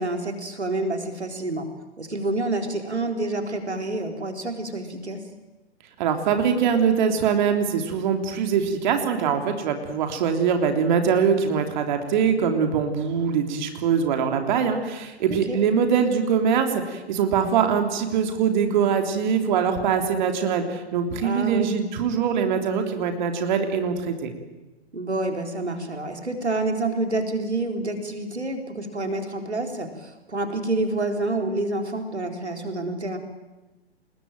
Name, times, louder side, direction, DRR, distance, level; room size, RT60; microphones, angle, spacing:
voice 1, 0.0-1.7 2.0-5.2 15.3-15.6 21.2-21.7 24.9-33.2, right 2 dB, 85° right, 5 dB, 4.2 m, -28 dB
voice 2, 6.0-24.3, right 7 dB, 45° right, 5 dB, 3.4 m, -23 dB
29.0 x 21.0 x 9.1 m, 1.1 s
figure-of-eight pair, 120°, 33 cm